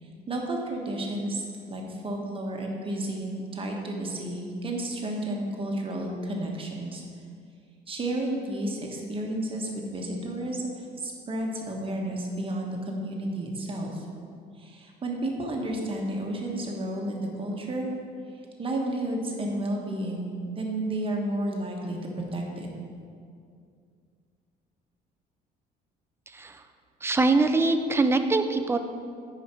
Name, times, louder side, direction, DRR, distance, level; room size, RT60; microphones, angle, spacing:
voice 1, 0.0-7.0 7.9-14.1 14.6-17.9 18.6-22.7, right 1 dB, 30° right, 0 dB, 1.3 m, -32 dB
voice 2, 26.3-26.6 27.0-28.8, right 3 dB, 15° right, 7 dB, 0.5 m, -23 dB
9.3 x 5.1 x 4.4 m, 2.3 s
cardioid pair, 110°, 17 cm